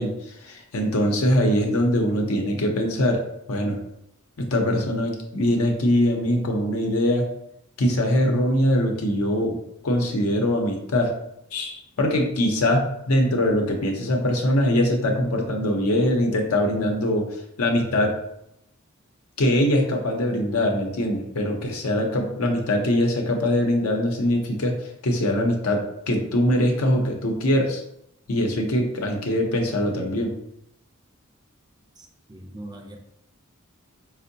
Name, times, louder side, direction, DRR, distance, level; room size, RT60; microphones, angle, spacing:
voice 1, 0.0-3.2 3.5-3.8 4.4-7.3 7.8-9.6 9.8-11.1 11.5-18.1 19.4-24.7 25.0-25.8 26.1-27.8 28.3-30.3, left 1 dB, 85° left, 2 dB, 0.6 m, -22 dB
voice 2, 32.0-33.0, right 1 dB, 20° right, 2 dB, 0.4 m, -41 dB
4.4 x 2.1 x 2.6 m, 0.78 s
head